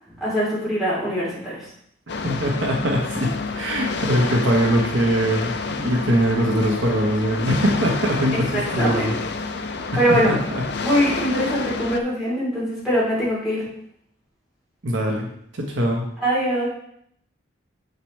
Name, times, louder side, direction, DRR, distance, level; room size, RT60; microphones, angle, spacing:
voice 1, 0.2-1.7 8.3-9.2 9.9-10.3 10.7-13.6 16.2-16.7, equal, ahead, -9 dB, 3.5 m, -22 dB
sound 1, 2.1-12.0, left 4 dB, 55° left, 0.6 m, -29 dB
voice 2, 2.2-9.2 10.1-10.6 14.8-15.3 15.5-16.1, equal, 65° right, 0 dB, 1.2 m, -22 dB
7.6 x 6.7 x 3.3 m, 0.70 s
head